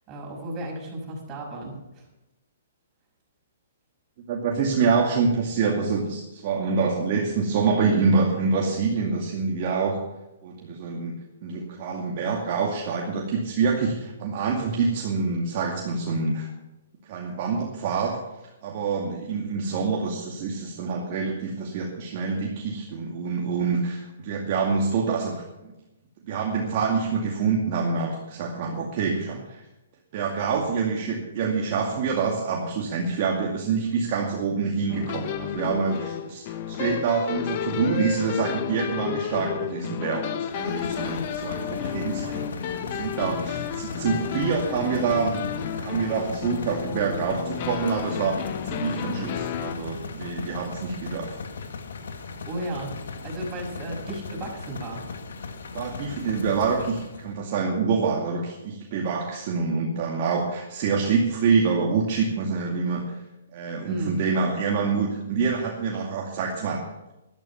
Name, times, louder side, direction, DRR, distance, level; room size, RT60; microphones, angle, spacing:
voice 1, 0.1-2.1 4.8-5.1 41.8-42.4 42.7-43.0 52.4-55.1 63.8-64.1, right 1 dB, 25° right, -1 dB, 6.2 m, -35 dB
voice 2, 4.3-10.0 10.4-11.2 11.4-16.5 17.1-18.2 18.6-25.7 26.2-29.6 30.1-42.5 42.8-45.4 45.7-51.4 55.7-63.2 63.5-66.8, right 5 dB, 45° right, -1 dB, 2.3 m, -26 dB
sound 1, 34.9-49.7, left 9 dB, 45° left, 1.3 m, -32 dB
sound 2, 40.5-57.4, left 4 dB, 70° left, 1.9 m, -38 dB
13.0 x 12.5 x 5.8 m, 0.97 s
hypercardioid pair, 135°, 0 cm